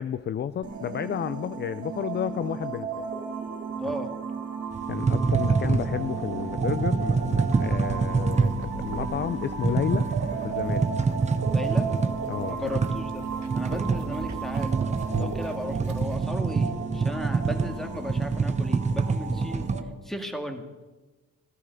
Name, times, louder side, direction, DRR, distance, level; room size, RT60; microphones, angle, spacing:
voice 1, 0.0-3.1 3.9-4.0 4.9-10.1 10.4-10.9 12.3-12.6 15.1-15.3, left 9 dB, 35° left, 14 dB, 0.4 m, -31 dB
sound 1, 0.6-19.8, right 5 dB, 55° right, 2.5 m, -34 dB
voice 2, 3.8-4.1 11.5-11.9 12.5-13.2 13.5-14.8 15.2-19.7 20.0-20.7, equal, ahead, 4 dB, 1.9 m, -35 dB
sound 2, 4.7-19.8, right 4 dB, 25° right, 0.8 m, -27 dB
sound 3, 7.2-16.2, right 5 dB, 70° right, 1.4 m, -45 dB
14.5 x 13.0 x 5.3 m, 1.2 s
cardioid pair, 90°, 30 cm